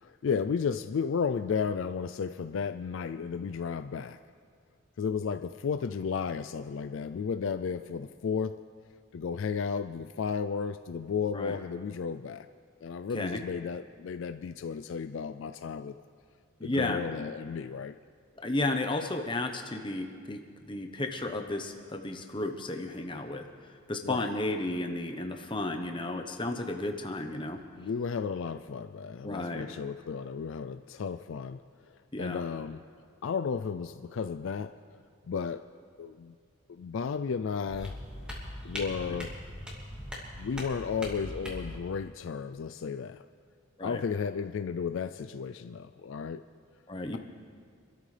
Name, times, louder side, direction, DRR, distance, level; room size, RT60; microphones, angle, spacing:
voice 1, 0.0-4.2 5.0-8.6 9.1-12.5 12.8-15.9 16.6-18.0 24.0-24.3 27.8-32.8 33.2-34.7 35.3-35.6 36.0-36.4 36.7-38.0 38.6-39.4 40.4-43.2 43.8-46.4, left 6 dB, 60° left, 10 dB, 0.3 m, -33 dB
voice 2, 16.6-17.0 18.4-23.5 23.9-27.6 29.2-29.7 32.1-32.4 39.0-39.1 43.8-44.0 46.9-47.2, left 2 dB, 20° left, 5 dB, 0.9 m, -33 dB
sound 1, 37.7-41.8, left 1 dB, 5° right, 2.3 m, -40 dB
26.0 x 13.0 x 3.3 m, 2.1 s
head